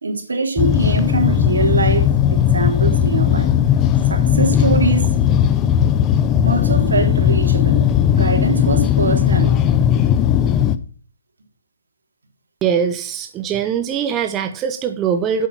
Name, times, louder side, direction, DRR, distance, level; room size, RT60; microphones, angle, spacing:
voice 1, 0.0-3.5 4.0-5.1 6.4-7.8 8.1-9.5, right 3 dB, 85° right, 3.3 m, -22 dB
sound 1, 0.6-10.8, left 9 dB, 20° left, 0.6 m, -16 dB
voice 2, 12.6-15.5, right 8 dB, 20° right, 0.8 m, -21 dB
8.1 x 7.4 x 5.9 m
hypercardioid pair, 150°, 0 cm